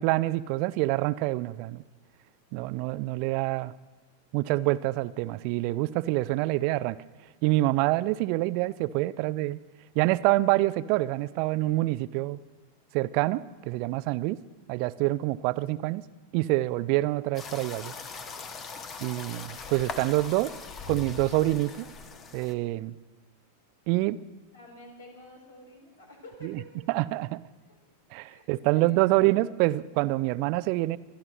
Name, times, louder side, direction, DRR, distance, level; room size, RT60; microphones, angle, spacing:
voice 1, 0.0-1.8 2.5-3.7 4.3-7.0 7.4-9.6 10.0-12.4 12.9-14.4 14.7-16.0 16.3-17.9 19.0-20.5 20.9-21.9 22.3-22.9 23.9-24.2 26.4-26.6 26.9-27.4 28.1-31.0, right 18 dB, 45° right, 17 dB, 0.4 m, -26 dB
sound 1, 17.3-22.5, left 5 dB, 25° left, 1.1 m, -40 dB
voice 2, 24.5-26.7 27.6-27.8 28.3-29.2, left 1 dB, 70° left, 0 dB, 4.1 m, -49 dB
22.5 x 13.0 x 3.1 m, 1.2 s
figure-of-eight pair, 90°, 0 cm